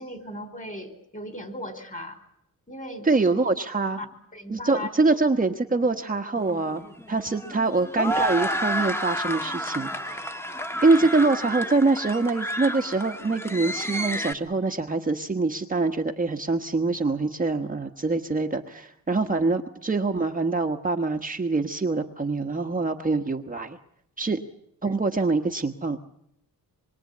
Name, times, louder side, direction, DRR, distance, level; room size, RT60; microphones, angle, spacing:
voice 1, 0.0-2.2 2.7-3.4 4.0-4.1 4.3-4.9 5.8-5.9 24.8-25.0, left 1 dB, 25° left, 9 dB, 4.6 m, -37 dB
voice 2, 3.0-4.0 4.5-10.3 10.8-23.8 24.2-24.4 24.8-26.0, right 3 dB, 25° right, 3 dB, 1.3 m, -24 dB
sound 1, 6.4-14.3, equal, 5° left, 1.5 m, -31 dB
26.5 x 22.5 x 8.5 m, 0.76 s
cardioid pair, 110°, 36 cm